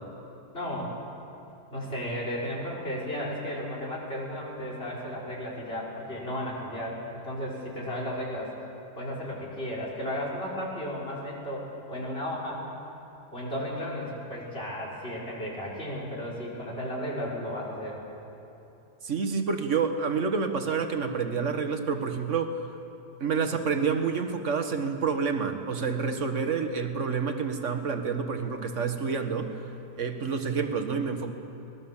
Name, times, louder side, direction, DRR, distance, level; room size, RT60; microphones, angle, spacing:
voice 1, 0.5-0.9 1.7-8.5 9.0-12.7 13.3-18.0, equal, 35° left, -3 dB, 4.9 m, -34 dB
voice 2, 19.0-22.6 23.2-29.5 30.0-31.3, right 5 dB, 50° right, 6 dB, 1.7 m, -28 dB
24.0 x 20.0 x 7.2 m, 2.9 s
omnidirectional pair, 1.7 m